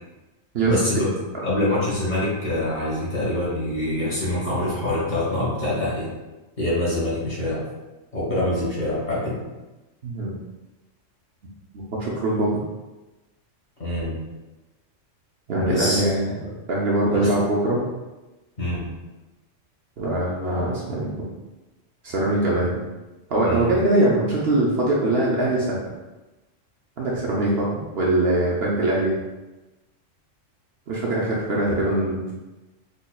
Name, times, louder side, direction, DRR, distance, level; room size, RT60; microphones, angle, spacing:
voice 1, 0.7-1.1 1.4-6.1 6.6-7.7 8.1-9.4 13.8-14.2 15.6-16.0 16.4-16.5 17.1-17.3 18.6-18.8 23.4-23.8, left 1 dB, 40° left, -7 dB, 1.4 m, -25 dB
voice 2, 10.0-10.3 12.0-12.6 15.5-16.4 16.7-17.8 20.0-21.1 22.0-22.8 23.3-25.8 27.0-29.2 30.9-32.3, right 1 dB, 60° right, -4 dB, 0.8 m, -22 dB
4.2 x 2.9 x 2.3 m, 1.1 s
omnidirectional pair, 1.3 m